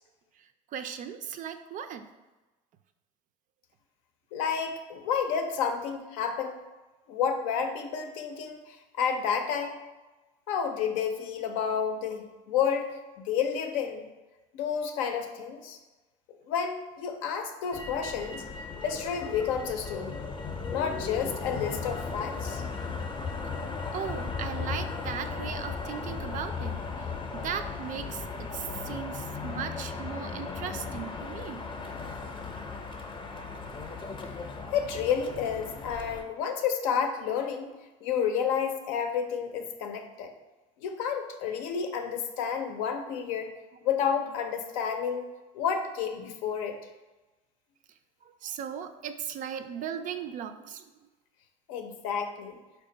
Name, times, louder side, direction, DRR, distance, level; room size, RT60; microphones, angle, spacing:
voice 1, 0.3-2.0 23.9-31.6 33.2-33.7 48.2-51.1, right 8 dB, 50° right, 9 dB, 0.4 m, -38 dB
voice 2, 4.3-6.6 7.1-9.8 10.5-13.0 13.2-14.0 14.5-15.8 16.5-18.4 18.8-20.2 20.7-22.6 34.7-37.7 38.0-40.3 40.8-43.5 43.8-45.2 45.5-46.8 51.7-52.6, left 7 dB, 80° left, 5 dB, 0.5 m, -30 dB
Motor vehicle (road), 17.7-36.2, left 4 dB, 30° left, 0.6 m, -36 dB
4.4 x 2.4 x 3.8 m, 1.1 s
supercardioid pair, 85°, 17 cm